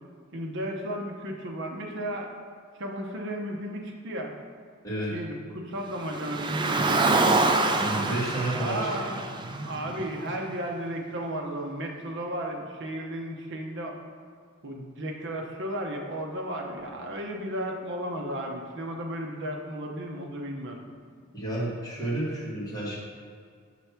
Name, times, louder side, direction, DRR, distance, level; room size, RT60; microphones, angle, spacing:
voice 1, 0.3-2.3 2.8-4.3 5.1-7.3 8.6-9.2 9.7-14.0 14.6-20.9, right 1 dB, 60° right, 1 dB, 0.8 m, -34 dB
voice 2, 4.8-5.2 7.7-9.2 21.3-23.0, right 1 dB, 15° left, -7 dB, 1.6 m, -31 dB
Car, 6.0-10.4, right 3 dB, 20° right, 0.3 m, -26 dB
5.9 x 3.3 x 5.8 m, 2.1 s
head